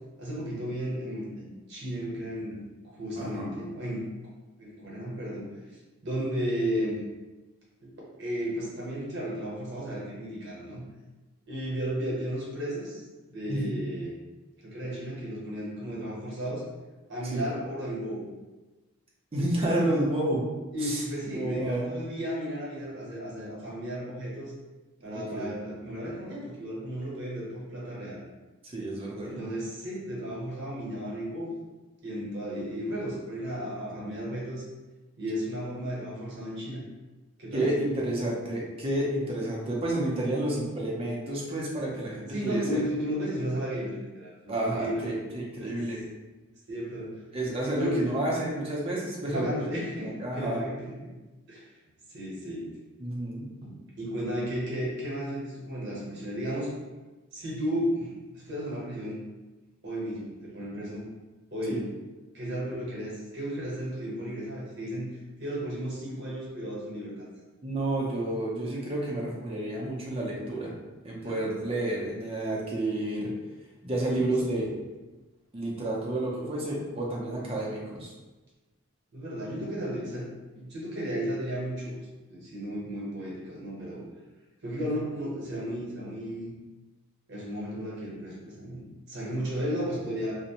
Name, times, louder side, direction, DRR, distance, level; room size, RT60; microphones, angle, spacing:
voice 1, 0.2-2.6 2.9-4.1 4.6-5.5 6.0-7.0 7.8-7.9 8.2-10.8 11.5-13.0 13.3-14.1 14.6-16.6 17.1-18.3 20.7-24.5 25.0-28.3 29.2-31.5 32.0-34.6 35.2-36.8 37.4-37.7 42.3-45.1 45.6-45.8 46.7-47.1 47.8-48.1 49.3-50.9 51.5-51.7 52.1-52.7 53.6-56.7 57.3-59.2 59.8-61.0 61.5-61.9 62.3-67.3 71.2-71.6 74.1-74.7 79.1-80.3 80.6-81.9 82.3-84.0 84.6-86.5 87.3-90.4, equal, 50° right, -5 dB, 0.9 m, -34 dB
voice 2, 3.2-3.5 13.5-13.8 17.2-17.5 19.3-20.4 20.8-21.0 21.3-21.9 25.1-25.5 28.7-29.4 37.5-42.8 44.5-46.0 47.3-49.5 50.2-50.6 53.0-53.5 61.7-61.8 67.6-70.7 71.0-73.3 73.8-74.7 75.5-78.1 84.8-84.9, right 1 dB, 25° right, -3 dB, 0.5 m, -30 dB
2.5 x 2.1 x 2.8 m, 1.2 s
head